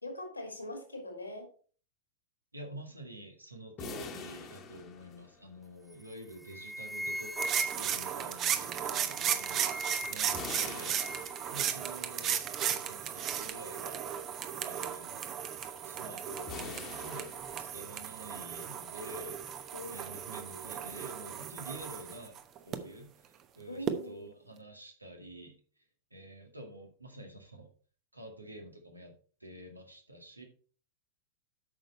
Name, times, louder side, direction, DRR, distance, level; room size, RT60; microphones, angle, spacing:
voice 1, 0.0-1.5 2.6-2.7 9.8-10.0 19.7-20.1 23.7-24.3, left 1 dB, 85° left, 3 dB, 3.1 m, -43 dB
voice 2, 2.5-11.0 11.5-12.4 12.7-14.0 14.6-15.3 15.8-17.3 17.6-22.4 22.6-25.6 26.1-27.7 28.1-29.1 29.4-30.4, right 1 dB, 85° right, 3 dB, 2.0 m, -48 dB
sound 1, 3.8-5.7 10.3-12.0 16.5-18.1, left 5 dB, 30° left, 1.5 m, -45 dB
sound 2, 5.9-6.1 6.4-8.1 8.9-10.4 10.6-11.4, right 1 dB, ahead, 0.3 m, -40 dB
sound 3, 7.4-22.8 23.9-24.0, right 9 dB, 30° right, 0.9 m, -35 dB
8.7 x 6.5 x 4.2 m, 0.41 s
figure-of-eight pair, 90°, 0 cm